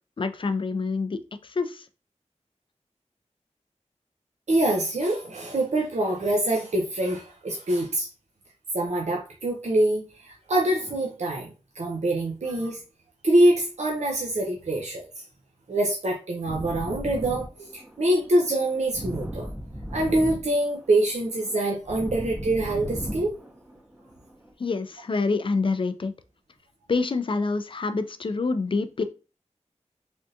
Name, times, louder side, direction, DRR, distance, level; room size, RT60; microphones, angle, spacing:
voice 1, 0.2-1.2 1.6-1.8 24.6-26.1 26.9-29.0, left 4 dB, 45° left, 10 dB, 0.4 m, -26 dB
voice 2, 4.5-8.1 8.7-12.8 13.2-15.3 15.7-19.5 19.9-23.4, right 1 dB, 70° right, -1 dB, 0.6 m, -25 dB
sound 1, 16.5-24.5, right 1 dB, 10° right, 0.6 m, -37 dB
3.4 x 2.4 x 2.7 m, 0.33 s
cardioid pair, 45°, 12 cm